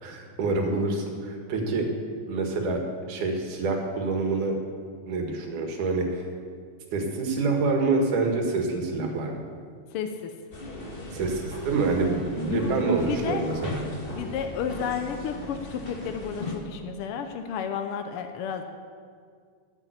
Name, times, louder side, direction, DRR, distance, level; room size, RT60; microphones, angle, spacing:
voice 1, 0.0-1.9 2.3-2.8 3.1-4.5 5.1-6.2 6.9-9.4 11.1-13.8, right 3 dB, 90° right, 2 dB, 3.1 m, -26 dB
voice 2, 9.9-10.3 12.5-12.7 13.0-13.4 14.1-18.6, left 7 dB, 85° left, 6 dB, 1.2 m, -32 dB
sound 1, 10.5-16.6, left 2 dB, 30° left, 1.1 m, -38 dB
14.0 x 7.4 x 8.1 m, 2.1 s
omnidirectional pair, 3.5 m